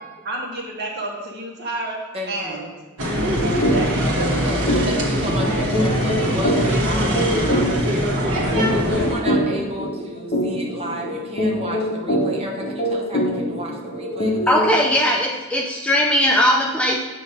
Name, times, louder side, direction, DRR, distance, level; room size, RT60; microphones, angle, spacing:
voice 1, 0.2-2.0 2.3-2.8 3.1-4.3, right 1 dB, 50° right, -3 dB, 1.4 m, -31 dB
voice 2, 2.1-2.7 4.3-7.7 8.2-14.7, right 1 dB, 30° right, -2 dB, 0.9 m, -32 dB
sound 1, 3.0-9.1, equal, 85° right, 1.3 m, -22 dB
sound 2, 3.6-3.8 4.1-4.3 4.7-14.9, equal, 45° left, 1.1 m, -24 dB
voice 3, 14.5-17.0, equal, 5° left, 0 dB, 0.4 m, -19 dB
8.0 x 3.0 x 5.4 m, 1.3 s
head